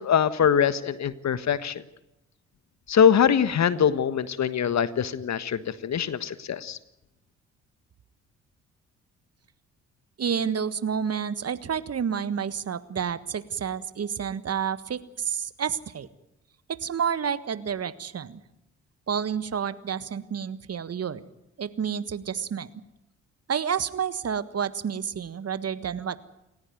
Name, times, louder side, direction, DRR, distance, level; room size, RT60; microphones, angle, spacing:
voice 1, 0.0-1.8 2.9-6.8, left 8 dB, 50° left, 15 dB, 1.5 m, -23 dB
voice 2, 10.2-16.1 16.7-18.4 19.1-21.2 21.6-22.7 23.5-26.2, right 7 dB, 45° right, 15 dB, 1.6 m, -29 dB
28.5 x 14.5 x 9.2 m, 0.90 s
hypercardioid pair, 45°, 36 cm